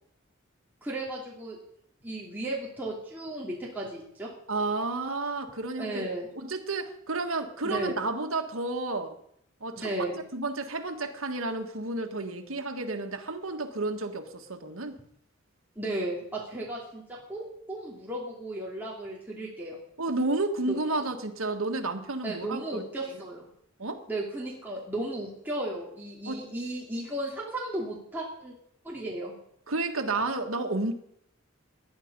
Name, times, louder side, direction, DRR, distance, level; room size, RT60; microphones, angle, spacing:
voice 1, 0.8-1.6 2.0-4.3 5.8-6.3 7.6-8.0 9.8-10.2 15.8-19.8 20.7-21.0 22.2-23.5 24.1-28.5 28.8-29.3, right 1 dB, 10° right, -5 dB, 2.8 m, -35 dB
voice 2, 4.5-6.0 6.4-9.2 9.6-15.0 20.0-23.2 23.8-24.0 26.3-26.4 29.7-31.0, right 2 dB, 80° right, 4 dB, 1.7 m, -31 dB
19.5 x 11.0 x 5.4 m, 0.70 s
head